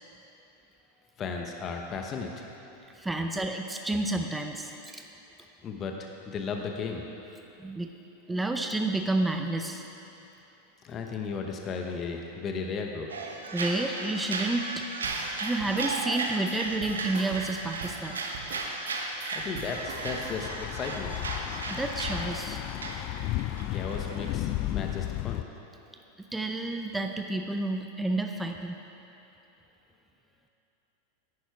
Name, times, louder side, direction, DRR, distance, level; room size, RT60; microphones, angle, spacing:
voice 1, 1.2-2.4 5.6-7.1 10.8-13.1 19.3-21.3 23.5-25.4, left 5 dB, 35° left, 2 dB, 1.0 m, -35 dB
voice 2, 2.9-5.1 7.6-7.9 8.3-9.9 13.5-14.9 15.4-18.2 21.7-22.6 26.2-28.8, right 2 dB, 10° right, 4 dB, 0.6 m, -30 dB
sound 1, 13.1-24.3, right 3 dB, 90° right, 1.0 m, -35 dB
sound 2, 15.0-20.5, right 5 dB, 70° right, 1.4 m, -43 dB
Thunder / Bicycle, 19.7-25.4, left 15 dB, 50° left, 0.3 m, -34 dB
10.0 x 9.7 x 4.6 m, 2.9 s
hypercardioid pair, 95°, 0 cm